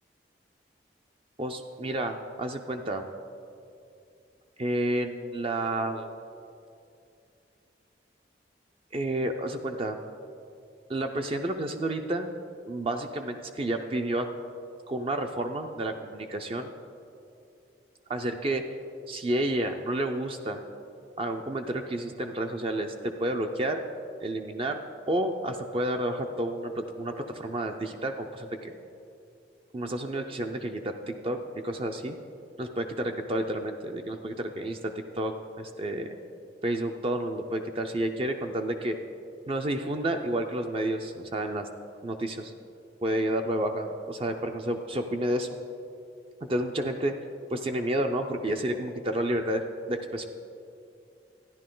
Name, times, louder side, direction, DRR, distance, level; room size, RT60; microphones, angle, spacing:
voice 1, 1.4-3.0 4.6-6.2 8.9-10.0 10.9-12.3 12.7-14.3 14.9-16.7 18.1-18.6 19.1-20.6 21.2-23.8 24.2-24.8 25.1-28.7 29.7-31.4 31.6-32.2 32.6-36.1 36.6-39.0 39.5-41.7 42.0-42.5 43.0-45.5 46.4-47.1 47.5-50.2, right 1 dB, 30° right, 5 dB, 0.4 m, -30 dB
13.0 x 10.5 x 3.8 m, 2.6 s
head